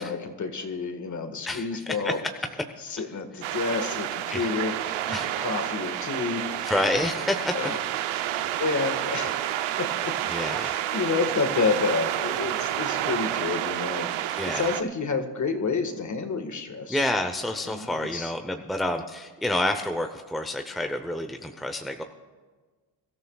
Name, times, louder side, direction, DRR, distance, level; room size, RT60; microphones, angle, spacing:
voice 1, 0.0-2.2 2.8-4.8 5.1-6.7 7.1-7.2 7.5-7.8 8.6-9.5 9.8-10.2 10.6-17.0 17.6-18.3, left 4 dB, 40° left, 7 dB, 1.7 m, -29 dB
sound 1, 3.4-14.8, right 12 dB, 90° right, 0.8 m, -29 dB
voice 2, 6.6-7.5 10.3-10.7 14.4-14.7 16.9-22.0, left 1 dB, ahead, 6 dB, 0.8 m, -28 dB
23.0 x 13.5 x 2.4 m, 1.4 s
cardioid pair, 100°, 47 cm